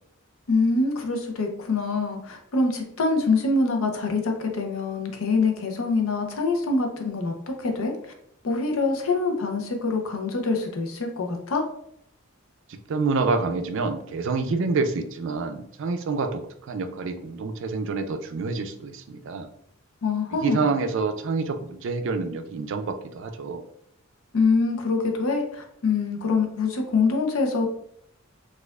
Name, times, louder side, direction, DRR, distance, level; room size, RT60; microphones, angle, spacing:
voice 1, 0.5-7.9 8.4-11.6 20.0-20.7 24.3-27.7, left 3 dB, 80° left, 3 dB, 0.6 m, -25 dB
voice 2, 12.7-19.5 20.4-23.6, right 4 dB, 65° right, 7 dB, 0.4 m, -27 dB
4.3 x 2.4 x 2.3 m, 0.72 s
head